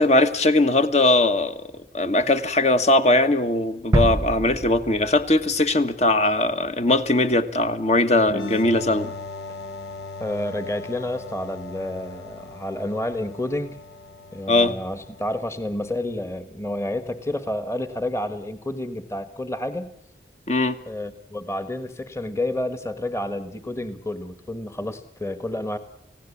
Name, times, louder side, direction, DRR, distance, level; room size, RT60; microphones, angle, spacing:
voice 1, 0.0-1.6 1.9-9.1 14.5-14.7 20.5-20.8, left 2 dB, 40° left, 9 dB, 1.4 m, -20 dB
sound 1, 3.9-5.9 6.2-6.4, right 1 dB, 20° right, 0.8 m, -26 dB
sound 2, 8.3-15.7, left 3 dB, 80° left, 1.2 m, -38 dB
voice 2, 10.2-13.8 14.3-19.9 20.8-25.8, left 1 dB, 15° left, 10 dB, 1.5 m, -30 dB
29.5 x 16.5 x 8.5 m, 0.80 s
head